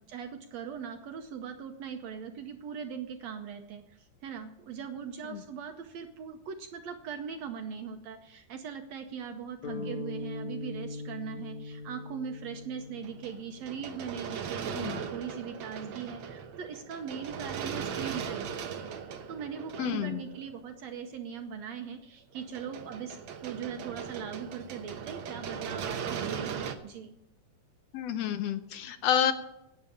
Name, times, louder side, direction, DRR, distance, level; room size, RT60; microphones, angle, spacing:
voice 1, 0.1-18.5 19.3-27.2, right 7 dB, 70° right, 6 dB, 1.8 m, -40 dB
sound 1, 9.6-13.9, left 2 dB, 60° left, 3.3 m, -40 dB
sound 2, 13.0-20.9 22.3-26.7, right 7 dB, 90° right, 1.0 m, -38 dB
voice 2, 19.8-20.2 27.9-29.3, left 9 dB, 80° left, 11 dB, 1.5 m, -29 dB
10.5 x 8.7 x 8.6 m, 0.85 s
omnidirectional pair, 3.7 m